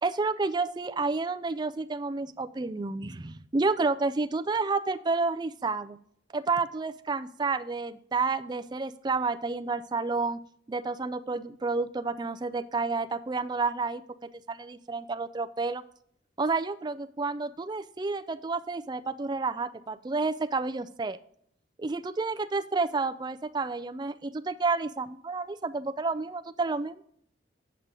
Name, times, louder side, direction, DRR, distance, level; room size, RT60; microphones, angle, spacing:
voice 1, 0.0-6.0 6.3-10.4 10.7-15.8 16.4-21.2 21.8-27.0, right 3 dB, 25° right, 12 dB, 0.4 m, -30 dB
8.0 x 7.5 x 3.7 m, 0.67 s
head